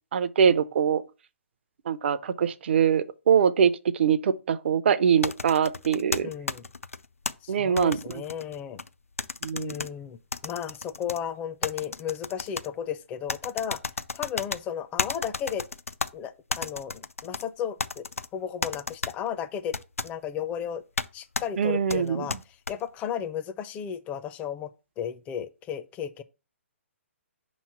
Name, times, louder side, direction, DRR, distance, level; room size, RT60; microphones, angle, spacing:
voice 1, 0.1-1.0 1.9-6.3 7.5-8.0 9.4-9.7 21.6-22.3, right 7 dB, 55° right, 0.5 m, -23 dB
sound 1, 5.2-7.3 7.8-8.9 9.2-9.9 10.3-11.2 11.6-12.7 13.3-14.6 15.0-16.1 16.5-17.4 17.8-18.3 18.6-19.1 19.7-20.1 21.0-21.1 21.3-21.5 21.9-22.7, left 4 dB, 90° left, 0.4 m, -32 dB
voice 2, 6.2-6.7 7.4-8.8 9.5-10.2 10.4-13.8 14.1-15.7 16.1-18.0 18.3-19.8 20.0-20.8 21.1-22.4 22.7-24.7 25.0-26.2, left 9 dB, 20° left, 0.5 m, -34 dB
5.6 x 3.1 x 5.7 m
figure-of-eight pair, 130°, 7 cm